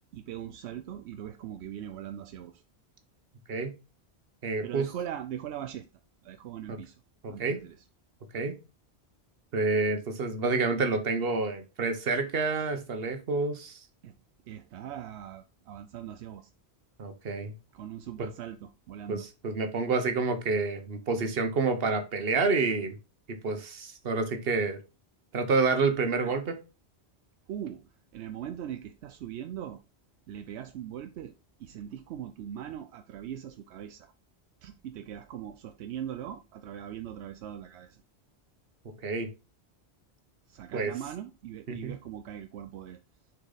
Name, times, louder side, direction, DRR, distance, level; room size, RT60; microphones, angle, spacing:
voice 1, 0.1-2.6 4.6-5.9 6.2-7.0 7.3-7.8 14.0-14.2 14.5-16.5 17.7-19.3 26.2-26.3 27.5-29.8 30.3-31.3 31.6-34.1 34.6-38.0 40.5-43.0, right 10 dB, 85° right, 0.8 m, -40 dB
voice 2, 4.4-4.9 6.7-6.8 7.2-7.6 8.3-8.6 9.5-13.8 17.0-17.5 18.2-18.3 19.1-22.9 23.4-24.8 25.3-26.6 39.0-39.3 40.7-40.9 41.7-41.9, right 4 dB, 60° right, 1.3 m, -28 dB
6.5 x 4.6 x 3.9 m
omnidirectional pair, 1.1 m